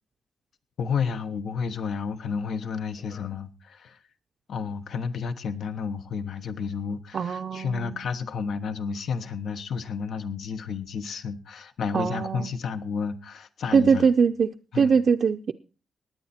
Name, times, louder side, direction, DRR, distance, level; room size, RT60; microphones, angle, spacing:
voice 1, 0.8-4.0 4.5-14.1 14.7-15.0, left 6 dB, 70° left, 10 dB, 1.1 m, -31 dB
voice 2, 7.1-8.0 11.9-12.5 13.7-14.5 14.7-15.5, right 6 dB, 50° right, 4 dB, 0.6 m, -22 dB
18.5 x 9.6 x 4.3 m, 0.35 s
wide cardioid pair, 150°, 0 cm